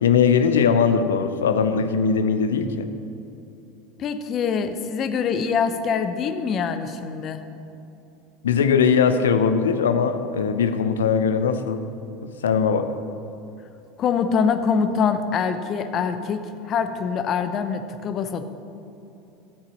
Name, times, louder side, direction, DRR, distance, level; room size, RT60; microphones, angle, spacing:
voice 1, 0.0-2.9 8.4-11.8 12.2-12.9, left 6 dB, 75° left, 9 dB, 0.6 m, -20 dB
voice 2, 4.0-7.4 14.0-18.4, left 6 dB, 40° left, 9 dB, 0.7 m, -24 dB
13.5 x 8.3 x 3.1 m, 2.8 s
figure-of-eight pair, 80°, 0 cm